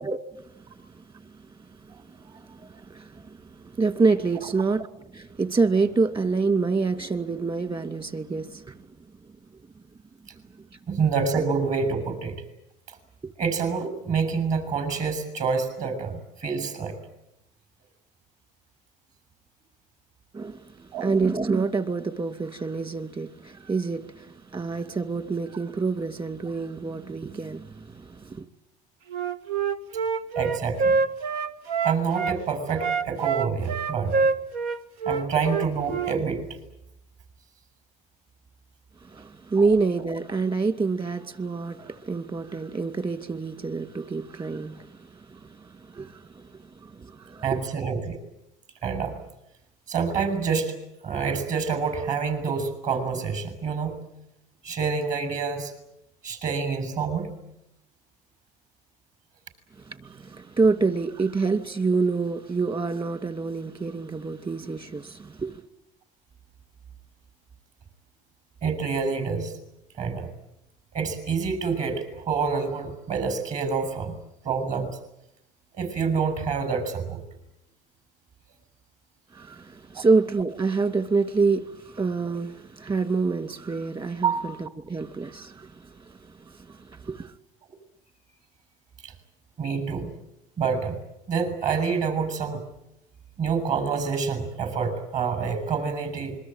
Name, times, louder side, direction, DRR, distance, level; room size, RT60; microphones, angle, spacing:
voice 1, 0.6-1.4 1.7-4.9 5.1-8.9 20.3-28.4 39.0-47.6 59.8-65.6 79.3-87.3, right 4 dB, 30° right, 2.4 m, -27 dB
voice 2, 10.9-12.4 13.4-17.0 20.9-21.1 30.4-31.0 31.8-34.3 35.1-36.4 47.4-48.2 48.8-49.2 49.9-50.8 51.0-54.0 54.6-55.7 56.2-57.3 68.6-69.5 70.0-70.3 70.9-74.1 74.4-74.9 75.7-77.2 79.9-80.1 84.2-84.4 89.0-89.1 89.6-90.1 90.6-91.0 91.3-92.7 93.4-96.4, right 5 dB, 45° right, 7.0 m, -27 dB
Wind instrument woodwind instrument, 29.1-32.4 32.7-36.2, right 5 dB, 90° right, 1.7 m, -26 dB
26.5 x 23.0 x 9.0 m
cardioid pair, 120°, 18 cm